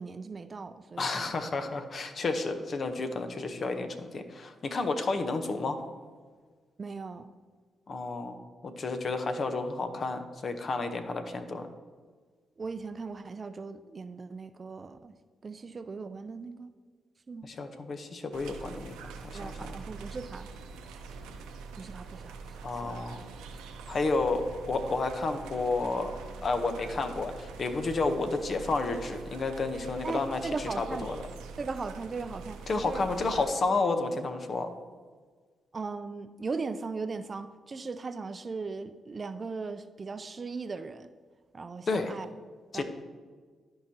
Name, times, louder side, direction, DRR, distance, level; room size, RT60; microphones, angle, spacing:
voice 1, 0.0-1.3 6.8-7.3 12.6-15.1 15.4-16.7 17.3-17.5 19.3-20.5 21.7-23.0 30.0-31.1 31.6-32.6 32.8-33.1 35.7-41.1 41.5-42.3 42.7-42.8, right 4 dB, 45° right, 11 dB, 0.5 m, -38 dB
voice 2, 1.0-5.8 7.9-8.4 8.6-11.7 17.4-19.7 22.6-23.2 23.9-26.1 26.4-30.4 30.8-31.1 32.7-34.7 41.9-42.2 42.7-42.8, left 3 dB, 55° left, 7 dB, 0.8 m, -31 dB
sound 1, 18.3-33.5, right 5 dB, 85° right, 0.7 m, -44 dB
13.0 x 4.8 x 2.8 m, 1.5 s
hypercardioid pair, 40°, 0 cm